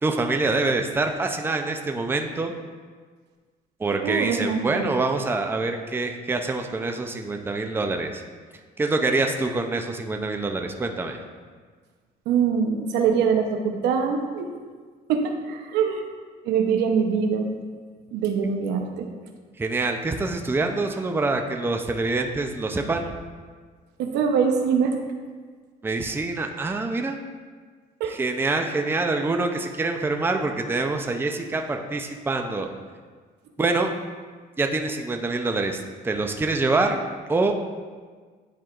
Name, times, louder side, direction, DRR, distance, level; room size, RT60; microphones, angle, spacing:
voice 1, 0.0-2.5 3.8-8.2 8.8-11.2 19.6-23.1 25.8-27.2 28.1-32.7 33.6-33.9 34.6-37.0 37.3-37.5, right 3 dB, 15° right, 4 dB, 0.5 m, -25 dB
voice 2, 4.0-4.9 12.3-14.5 15.1-16.0 16.4-17.5 18.1-19.1 24.0-25.0 28.0-28.2, right 6 dB, 85° right, 4 dB, 0.7 m, -23 dB
10.0 x 4.4 x 2.4 m, 1.5 s
cardioid pair, 110°, 17 cm